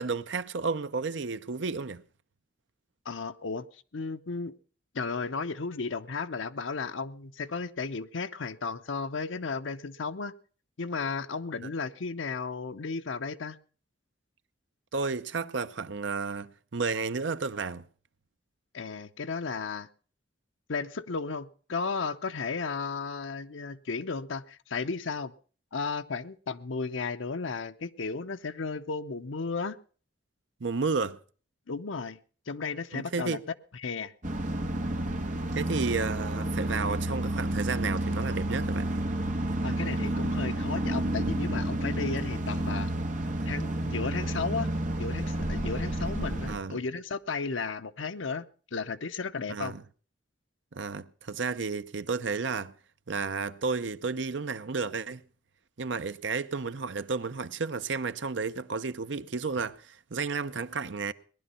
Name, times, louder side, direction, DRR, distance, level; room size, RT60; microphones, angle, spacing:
voice 1, 0.0-2.0 11.6-11.7 14.9-17.8 30.6-31.2 32.9-33.4 35.5-38.9 46.5-46.8 49.5-49.8 50.7-52.7 53.1-55.2 55.8-61.1, right 4 dB, 70° right, 0.7 m, -32 dB
voice 2, 3.1-3.7 3.9-4.5 4.9-10.3 10.8-13.6 18.7-19.9 20.7-25.3 25.7-29.8 31.7-32.2 32.5-33.4 33.8-34.1 39.6-42.9 43.5-44.7 45.0-48.5 48.7-49.7, left 4 dB, 90° left, 0.8 m, -34 dB
sound 1, 34.2-46.6, right 1 dB, 40° right, 1.6 m, -30 dB
19.0 x 11.0 x 5.6 m
head